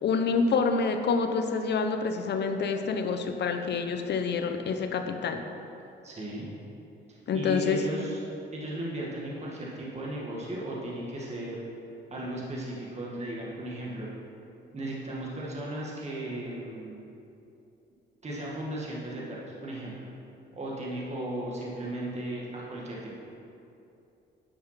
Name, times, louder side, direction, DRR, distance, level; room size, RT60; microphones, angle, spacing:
voice 1, 0.0-5.4 7.3-7.8, left 5 dB, 60° left, 7 dB, 0.9 m, -27 dB
voice 2, 6.0-6.5 7.1-8.2 8.5-11.6 12.1-14.1 14.7-17.0 18.2-20.1 20.5-23.1, right 1 dB, 35° right, -5 dB, 1.9 m, -36 dB
10.0 x 6.0 x 5.8 m, 2.8 s
cardioid pair, 90°, 20 cm